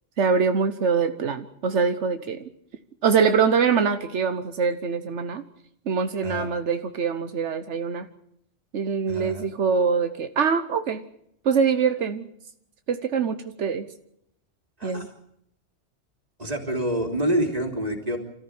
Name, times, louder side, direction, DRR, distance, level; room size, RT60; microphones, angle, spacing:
voice 1, 0.2-2.4 3.0-5.4 5.9-8.1 8.7-11.0 11.4-12.3 12.9-13.9 14.8-15.1, right 6 dB, 85° right, 9 dB, 1.4 m, -24 dB
voice 2, 9.1-9.5 14.8-15.1 16.4-18.2, right 1 dB, 35° right, 2 dB, 3.6 m, -27 dB
26.5 x 14.5 x 8.8 m, 0.74 s
omnidirectional pair, 1.2 m